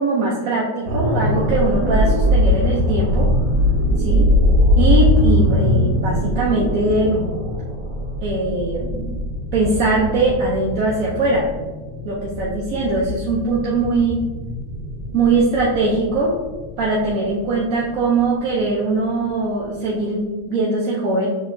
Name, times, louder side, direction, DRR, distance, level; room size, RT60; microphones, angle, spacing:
voice 1, 0.0-3.3 4.0-4.3 4.8-7.3 8.2-9.2 9.5-11.5 12.1-14.2 15.1-16.4 16.8-21.3, right 2 dB, 60° right, -4 dB, 1.0 m, -21 dB
sound 1, 0.8-18.7 19.1-19.3, left 1 dB, 80° right, 1.6 m, -21 dB
6.8 x 3.0 x 2.6 m, 1.2 s
omnidirectional pair, 1.8 m